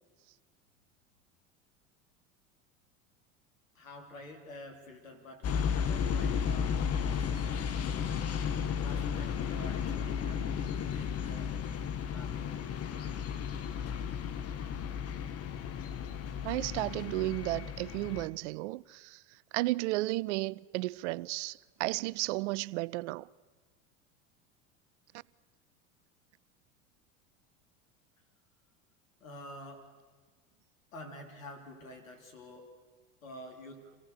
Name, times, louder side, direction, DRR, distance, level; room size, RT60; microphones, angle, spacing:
voice 1, 3.8-8.5 8.8-11.5 12.1-12.5 29.2-29.9 30.9-32.7 33.2-33.8, left 1 dB, 80° left, 3.3 m, -49 dB
sound 1, 5.4-18.3, left 7 dB, 35° left, 1.4 m, -34 dB
voice 2, 16.4-19.2 19.5-23.3, right 20 dB, 60° right, 0.5 m, -33 dB
26.0 x 16.5 x 6.9 m
hypercardioid pair, 75°, 39 cm